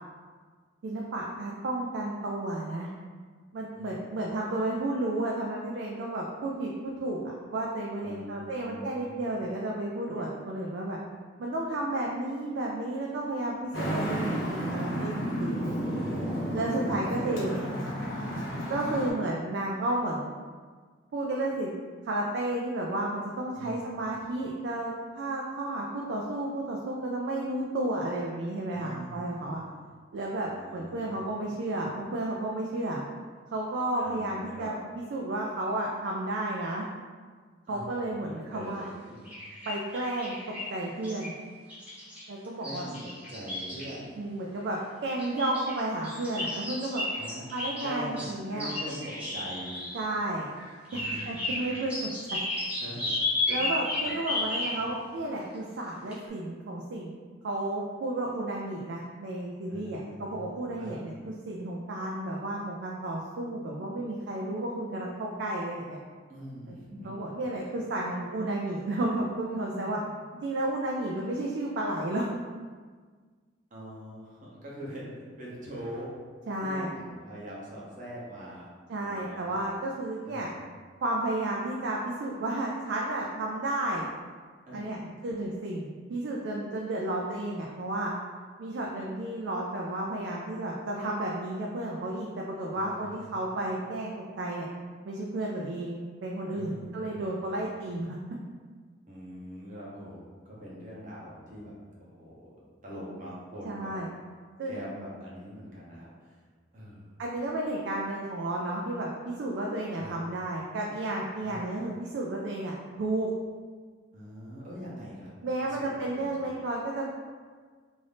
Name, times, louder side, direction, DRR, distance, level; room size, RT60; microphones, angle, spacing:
voice 1, 0.8-2.9 3.5-11.0 11.4-15.9 16.5-17.5 18.7-20.3 21.1-21.7 22.0-29.6 30.1-33.0 33.5-34.7 35.1-36.9 37.7-38.9 39.7-40.3 40.7-41.3 42.3-42.9 44.2-47.0 47.5-48.7 49.9-50.5 50.9-51.9 53.5-57.1 57.4-66.0 66.7-66.8 67.0-70.0 70.4-72.3 76.5-76.9 78.9-80.5 81.0-84.1 84.7-85.0 85.2-88.1 88.6-94.7 95.0-98.2 103.6-104.1 104.6-104.8 107.2-113.3 115.4-117.1, right 1 dB, 60° right, -2 dB, 0.3 m, -32 dB
voice 2, 3.7-4.1 8.0-9.5 10.1-10.2 15.9-18.2 23.5-23.8 28.7-29.8 30.4-31.2 34.0-34.7 37.7-37.9 38.2-39.4 42.6-44.2 47.1-47.4 47.8-49.9 50.9-51.6 52.6-54.2 54.7-55.0 59.7-61.0 66.3-67.4 67.7-67.8 69.7-70.0 73.7-76.1 76.6-78.7 79.0-79.6 80.2-80.6 84.7-85.1 92.7-93.6 96.5-97.2 99.1-101.7 102.0-103.9 104.7-106.4 106.7-107.1 109.9-110.2 111.4-111.7 114.1-115.3 115.6-115.9 116.1-116.5, equal, 40° right, -6 dB, 0.8 m, -43 dB
Traffic noise roadway noise, 13.7-19.1, equal, 85° left, 1.0 m, -32 dB
sound 1, 39.3-40.7 41.0-41.4 41.7-43.9 45.1-50.1 50.5-54.8 55.6-55.7 56.1-56.2, left 2 dB, 5° right, 0.6 m, -34 dB
2.6 x 2.5 x 3.4 m, 1.5 s
head